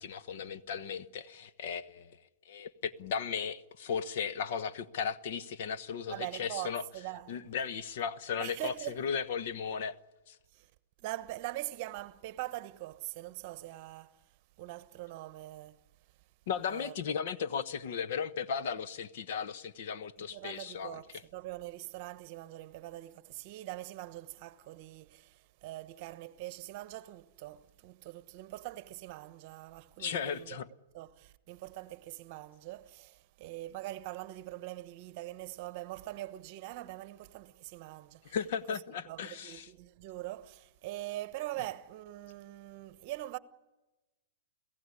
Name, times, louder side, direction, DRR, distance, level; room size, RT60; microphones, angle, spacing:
voice 1, 0.0-2.2 2.4-6.8 7.3-10.0 10.3-10.4 16.5-21.0 30.0-30.7 38.2-39.7, left 7 dB, 55° left, 1.1 m, -36 dB
voice 2, 6.1-7.3 8.4-9.0 10.5-10.7 11.0-14.1 14.6-15.8 16.7-16.9 20.2-30.6 30.9-38.4 38.7-38.8 39.1-43.4, right 16 dB, 40° right, 1.1 m, -43 dB
29.5 x 17.0 x 9.8 m
hypercardioid pair, 150°, 0 cm